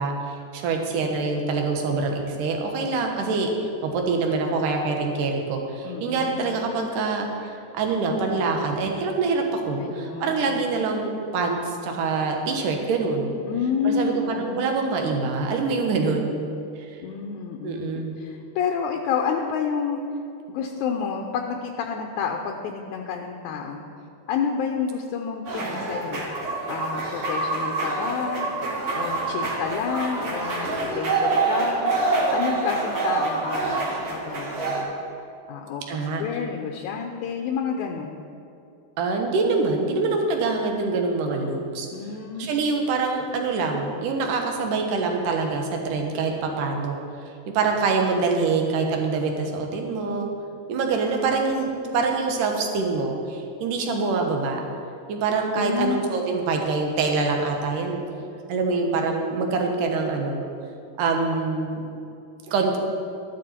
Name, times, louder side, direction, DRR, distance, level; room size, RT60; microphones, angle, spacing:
voice 1, 0.0-13.3 13.8-16.3 16.9-17.0 17.6-18.1 35.9-36.2 39.0-41.9 42.4-47.0 47.5-50.3 50.7-54.6 55.1-58.0 58.5-60.4 61.0-61.8 62.5-62.8, right 4 dB, 80° right, 2 dB, 2.8 m, -25 dB
voice 2, 5.8-6.4 9.8-10.6 13.4-14.8 17.0-20.0 20.5-23.8 24.3-26.2 26.7-28.5 28.9-31.9 32.3-34.9 35.5-38.2 41.9-42.5 55.6-56.1, left 6 dB, 75° left, 2 dB, 2.1 m, -29 dB
sound 1, 25.5-34.8, right 3 dB, 55° right, 3.1 m, -26 dB
13.0 x 11.5 x 4.4 m, 2.6 s
omnidirectional pair, 3.7 m